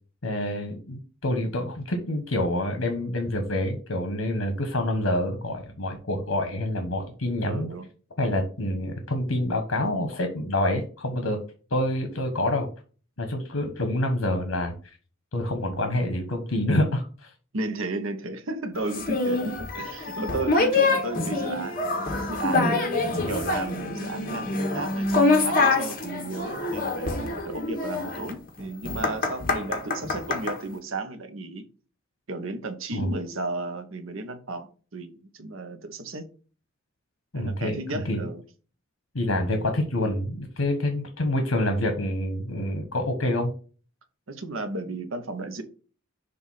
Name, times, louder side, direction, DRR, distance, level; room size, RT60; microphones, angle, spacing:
voice 1, 0.2-7.7 8.2-11.4 11.7-12.7 13.2-14.7 15.3-17.3 32.9-33.1 37.3-38.3 39.1-43.5, left 1 dB, 80° left, 1.2 m, -27 dB
voice 2, 7.5-7.9 17.5-22.9 23.3-31.7 32.3-36.3 37.3-38.4 44.3-45.6, right 2 dB, 85° right, 1.0 m, -34 dB
sound 1, 18.9-30.6, left 3 dB, 45° left, 1.5 m, -26 dB
6.8 x 2.6 x 5.6 m
head